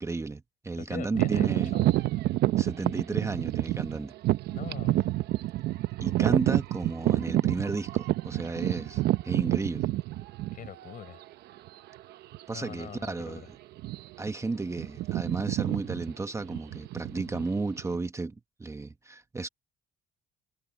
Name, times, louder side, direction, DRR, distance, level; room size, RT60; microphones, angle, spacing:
voice 1, 0.0-1.7 2.6-4.1 6.0-9.9 12.5-13.4 14.2-18.3 18.6-19.5, right 3 dB, 15° right, 1.1 m, -33 dB
voice 2, 0.8-1.5 1.7-1.9 4.5-5.1 10.5-11.2 12.5-13.4, left 9 dB, 55° left, 6.6 m, -42 dB
sound 1, 1.1-10.9 11.6-11.7 12.3-12.6 12.8-13.1 13.7-14.3 14.5-18.0, right 15 dB, 75° right, 0.9 m, -28 dB
cardioid pair, 110°, 17 cm